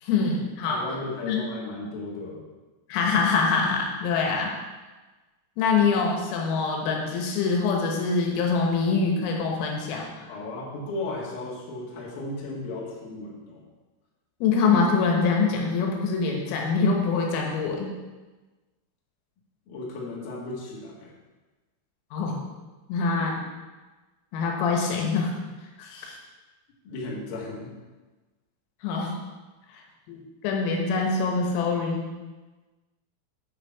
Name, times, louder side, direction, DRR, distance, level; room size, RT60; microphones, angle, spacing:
voice 1, 0.0-0.8 1.2-1.4 2.9-4.5 5.6-10.3 14.4-17.9 22.1-22.4 22.9-23.5 24.3-25.3 25.8-26.2 28.8-29.1 29.7-29.8 30.1-32.1, left 4 dB, 85° left, 0 dB, 3.8 m, -24 dB
voice 2, 0.7-2.4 10.3-13.6 19.7-21.1 26.8-27.7, left 2 dB, 60° left, -4 dB, 3.0 m, -35 dB
8.9 x 6.5 x 4.6 m, 1.2 s
omnidirectional pair, 5.9 m